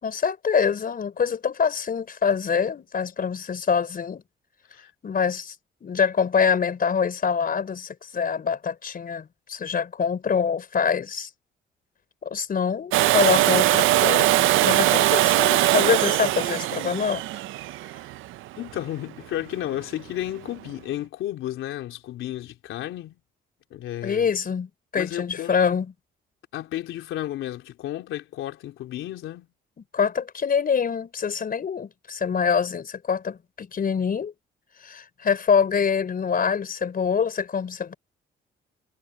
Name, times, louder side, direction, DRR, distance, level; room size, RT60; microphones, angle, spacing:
voice 1, 0.0-4.2 5.0-5.5 5.8-11.3 12.2-17.2 24.0-25.9 29.9-34.3 34.8-37.9, left 6 dB, 45° left, 4.6 m, -25 dB
Domestic sounds home sounds, 12.9-18.7 20.7-20.8, right 15 dB, 85° right, 0.6 m, -21 dB
voice 2, 18.6-23.2 23.7-24.3 24.9-25.8 26.5-29.5, left 13 dB, 85° left, 3.6 m, -33 dB
cardioid pair, 90°, 20 cm